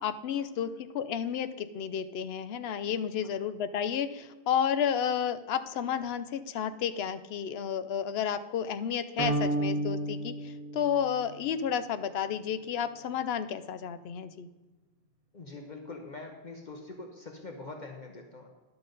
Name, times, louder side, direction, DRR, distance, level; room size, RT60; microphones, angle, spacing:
voice 1, 0.0-14.5, left 8 dB, 75° left, 12 dB, 0.8 m, -31 dB
sound 1, 9.2-11.5, right 2 dB, 35° right, 1.3 m, -32 dB
voice 2, 15.3-18.5, left 3 dB, 50° left, 3 dB, 1.1 m, -43 dB
11.5 x 5.9 x 5.2 m, 1.2 s
omnidirectional pair, 1.1 m